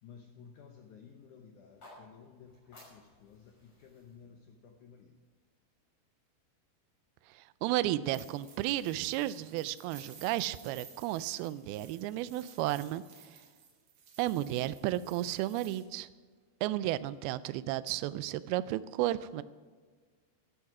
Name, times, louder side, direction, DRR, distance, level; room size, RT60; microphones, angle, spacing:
voice 1, 0.0-5.2, left 6 dB, 75° left, 3 dB, 1.8 m, -55 dB
sound 1, 1.6-5.7, left 1 dB, 35° left, 6.3 m, -59 dB
voice 2, 7.3-13.4 14.2-16.1 16.6-19.4, right 14 dB, 80° right, 15 dB, 2.3 m, -33 dB
sound 2, 8.0-15.8, right 6 dB, 50° right, 2.7 m, -55 dB
15.0 x 12.0 x 4.8 m, 1.5 s
omnidirectional pair, 4.8 m